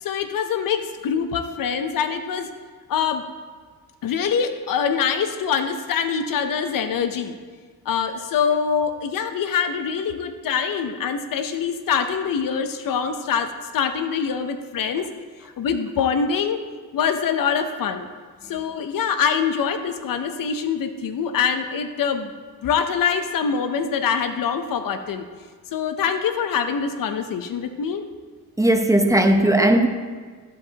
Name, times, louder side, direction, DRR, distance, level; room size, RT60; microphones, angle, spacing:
voice 1, 0.0-2.5 2.9-3.2 4.0-7.4 7.9-15.1 15.6-16.6 16.9-18.1 18.5-22.3 22.6-25.2 25.7-28.1, left 7 dB, 65° left, 8 dB, 0.7 m, -24 dB
voice 2, 28.6-29.9, right 1 dB, 10° right, 5 dB, 0.8 m, -17 dB
14.5 x 5.4 x 2.9 m, 1.5 s
cardioid pair, 75°, 36 cm